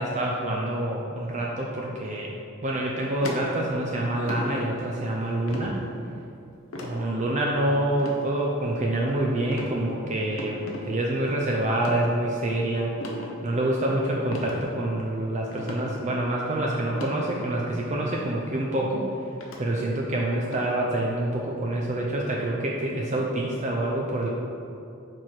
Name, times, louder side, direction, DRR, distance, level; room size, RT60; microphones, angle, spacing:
voice 1, 0.0-2.3 2.6-5.8 6.8-12.9 13.4-19.1 19.6-24.3, right 1 dB, 35° right, -2 dB, 0.5 m, -27 dB
sound 1, 3.2-3.9 4.2-4.5 5.5-5.7 6.7-7.0 8.0-8.2 8.7-9.1 9.5-9.7 10.4-10.8 11.7-12.0 13.0-13.3 14.3-14.5 14.9-15.0 15.5-15.9 16.9-17.1 18.2-18.3 19.4-19.6 20.5-20.7, left 2 dB, 75° left, 0.9 m, -36 dB
6.0 x 4.4 x 4.7 m, 2.7 s
head